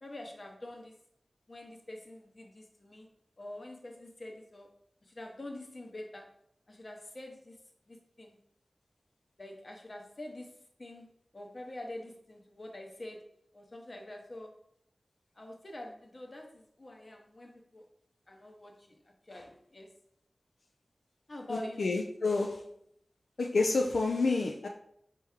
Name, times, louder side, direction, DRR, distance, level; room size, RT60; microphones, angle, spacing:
voice 1, 0.0-0.9 1.5-3.1 3.4-4.7 5.0-6.3 6.7-7.6 7.9-8.3 9.4-10.5 10.8-11.1 11.3-13.2 13.5-14.5 15.4-17.8 18.3-19.9 21.3-21.8, left 1 dB, 45° left, 0.8 m, -46 dB
voice 2, 21.5-22.6 23.4-24.7, left 3 dB, 85° left, 0.3 m, -29 dB
4.5 x 3.0 x 3.5 m
wide cardioid pair, 65°, 0 cm